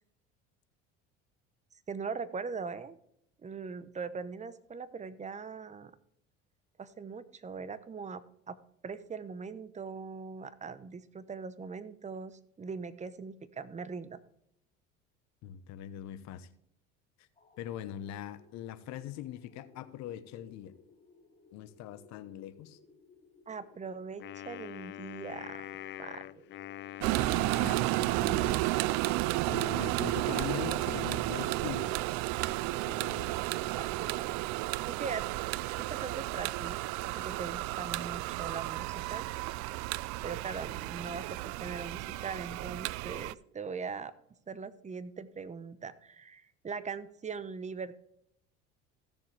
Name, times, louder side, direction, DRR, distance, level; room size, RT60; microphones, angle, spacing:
voice 1, 1.9-3.0 3.4-5.9 6.8-8.6 8.8-14.2 23.5-25.7 26.0-26.4 33.7-34.4 34.9-35.2 35.8-39.3 40.2-44.1 44.5-48.0, right 5 dB, 25° right, 14 dB, 0.9 m, -41 dB
voice 2, 15.4-16.5 17.2-17.3 17.6-20.7 21.5-22.8 27.2-31.9 32.9-33.3, left 11 dB, 65° left, 13 dB, 1.1 m, -42 dB
sound 1, 17.4-30.6, left 4 dB, 20° left, 1.7 m, -62 dB
Wind instrument woodwind instrument, 24.2-28.6, left 13 dB, 40° left, 0.4 m, -45 dB
sound 2, 27.0-43.3, right 19 dB, 65° right, 0.5 m, -32 dB
15.5 x 7.1 x 3.3 m, 0.73 s
supercardioid pair, 95°, 30 cm